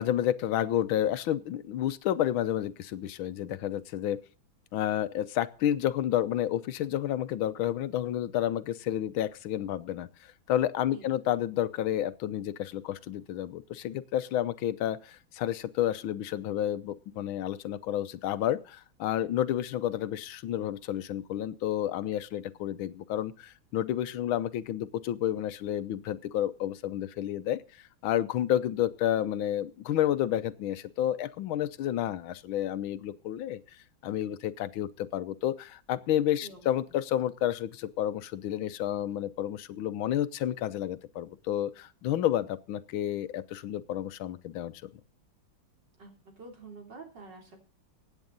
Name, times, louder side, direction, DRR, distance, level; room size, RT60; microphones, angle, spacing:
voice 1, 0.0-4.2 4.7-10.1 10.5-27.6 28.0-33.6 34.0-44.7, left 11 dB, 90° left, 14 dB, 1.6 m, -30 dB
voice 2, 46.0-47.6, right 3 dB, 60° right, 3 dB, 3.8 m, -48 dB
16.5 x 9.2 x 4.0 m, 0.37 s
omnidirectional pair, 2.2 m